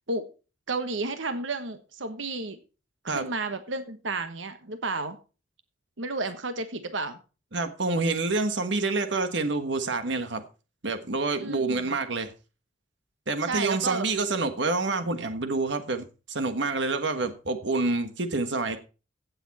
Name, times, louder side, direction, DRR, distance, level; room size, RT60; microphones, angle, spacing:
voice 1, 0.7-2.6 3.0-5.2 6.0-7.2 11.4-11.9 13.4-14.1, right 3 dB, 90° right, 1.3 m, -32 dB
voice 2, 7.5-10.4 10.8-12.3 13.3-18.8, right 3 dB, 65° right, 1.4 m, -27 dB
16.0 x 7.1 x 4.2 m
head